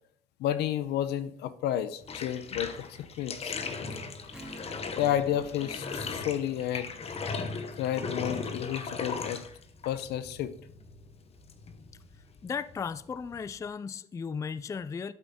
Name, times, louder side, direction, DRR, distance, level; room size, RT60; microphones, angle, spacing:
voice 1, 0.4-3.6 5.0-7.0 7.8-9.4 9.9-10.5, left 11 dB, 80° left, 0.8 m, -31 dB
Bathtub (filling or washing), 2.0-13.7, left 4 dB, 35° left, 1.0 m, -38 dB
Strum, 4.3-9.2, right 2 dB, 5° right, 2.4 m, -53 dB
voice 2, 12.4-15.1, left 6 dB, 20° left, 0.3 m, -35 dB
12.5 x 7.6 x 3.6 m
cardioid pair, 110°, 17 cm